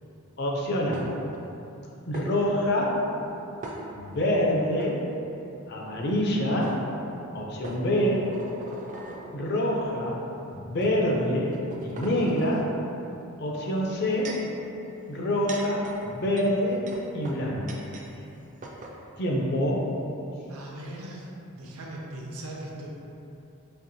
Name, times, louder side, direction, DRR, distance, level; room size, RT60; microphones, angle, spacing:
voice 1, 0.4-1.1 2.1-3.0 4.0-5.0 5.7-6.8 7.3-8.3 9.3-10.2 10.5-11.5 11.8-12.7 13.4-14.4 15.1-16.9 17.1-17.7 19.2-19.9, left 1 dB, 50° left, -2 dB, 0.5 m, -26 dB
sound 1, 0.9-1.4 2.1-2.3 3.6-4.3 4.7-4.9 6.2-6.3 6.6-6.8 7.6-9.2 10.0-10.2 10.8-10.9 11.5-12.6 13.7-14.5 15.2-18.1 18.3-18.4 18.6-19.0, right 2 dB, 35° right, 0.3 m, -41 dB
voice 2, 20.5-21.3 21.5-22.9, right 1 dB, 80° right, -2 dB, 0.6 m, -39 dB
4.3 x 2.8 x 2.7 m, 2.9 s
head